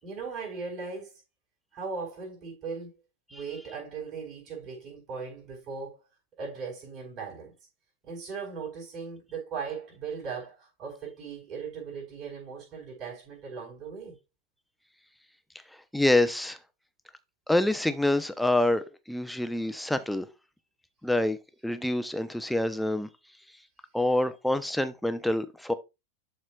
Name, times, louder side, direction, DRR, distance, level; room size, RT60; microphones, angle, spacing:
voice 1, 0.0-1.1 1.7-3.0 3.3-6.0 6.3-7.5 8.0-14.1, right 5 dB, 35° right, 4.3 m, -38 dB
voice 2, 15.9-16.6 17.5-20.3 21.0-21.4 21.6-23.1 23.9-25.7, left 1 dB, ahead, 0.7 m, -26 dB
11.5 x 4.4 x 2.4 m
figure-of-eight pair, 90°, 0 cm